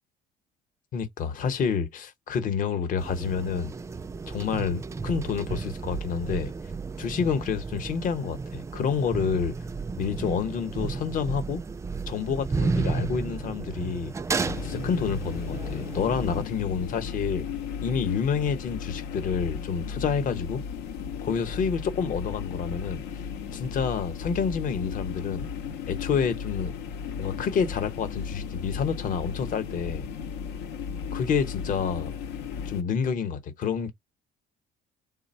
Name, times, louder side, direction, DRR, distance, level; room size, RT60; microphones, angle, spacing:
voice 1, 0.9-3.7 4.3-6.5 7.0-9.5 10.0-11.6 12.1-14.1 14.6-17.4 17.8-20.6 21.2-23.0 23.5-25.5 25.9-26.8 27.2-30.1 31.1-32.1 32.7-33.9, left 6 dB, 50° left, 0.8 m, -28 dB
sound 1, 3.0-16.4, right 4 dB, 15° right, 0.3 m, -33 dB
sound 2, 14.4-32.8, left 6 dB, 85° left, 0.6 m, -35 dB
3.3 x 2.1 x 4.1 m
cardioid pair, 110°, 17 cm